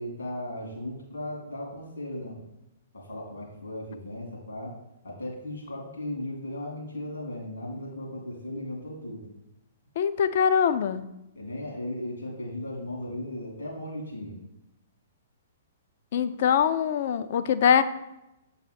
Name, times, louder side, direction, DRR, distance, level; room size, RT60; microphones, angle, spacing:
voice 1, 0.0-2.4 2.9-4.7 5.0-9.2 11.3-14.4, left 1 dB, 70° left, -2 dB, 2.4 m, -36 dB
voice 2, 10.0-11.0 16.1-17.8, left 7 dB, 50° left, 12 dB, 0.4 m, -23 dB
7.4 x 4.0 x 4.2 m, 0.90 s
figure-of-eight pair, 115°, 0 cm